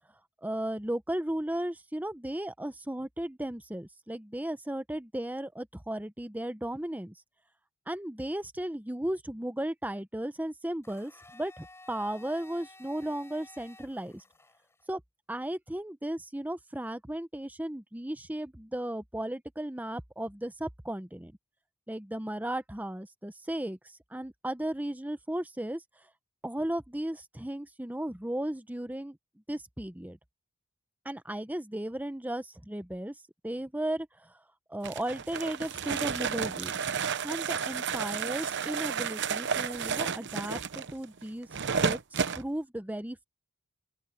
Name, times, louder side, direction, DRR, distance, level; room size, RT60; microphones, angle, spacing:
voice 1, 0.4-7.1 7.9-14.2 14.9-15.0 15.3-21.3 21.9-23.8 24.1-25.8 26.4-29.2 29.5-30.2 31.0-33.1 33.4-34.1 34.7-36.8 37.2-42.0 42.3-43.2, right 1 dB, 10° right, 0.8 m, -35 dB
Domestic sounds home sounds, 10.8-14.9, left 2 dB, 15° left, 4.0 m, -54 dB
sound 1, 34.8-42.4, right 6 dB, 55° right, 0.9 m, -32 dB
open air
head